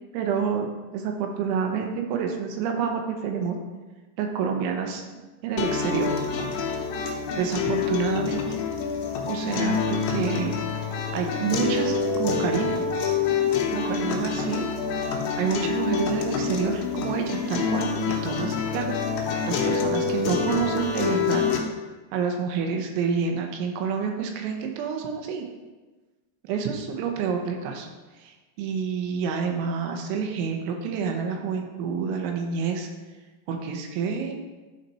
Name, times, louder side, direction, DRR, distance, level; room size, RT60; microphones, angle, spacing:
voice 1, 0.1-3.6 4.2-5.0 5.4-6.1 7.4-8.4 9.3-10.5 10.8-12.8 13.7-14.6 15.4-21.4 22.1-25.5 26.4-27.9 28.2-32.9 33.5-34.3, right 6 dB, 90° right, 3 dB, 3.4 m, -28 dB
sound 1, 5.6-21.6, left 5 dB, 75° left, 3.1 m, -27 dB
11.5 x 4.2 x 4.2 m, 1.2 s
omnidirectional pair, 5.2 m